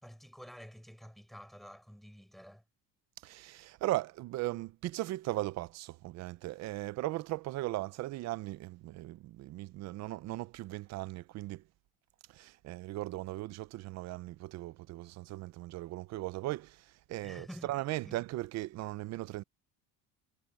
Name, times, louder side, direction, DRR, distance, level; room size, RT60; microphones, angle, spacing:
voice 1, 0.0-2.6 17.2-17.7 18.0-18.2, equal, ahead, 6.0 m, -50 dB
voice 2, 3.2-11.6 12.3-19.4, right 17 dB, 50° right, 0.6 m, -38 dB
cardioid pair, 160°, 35 cm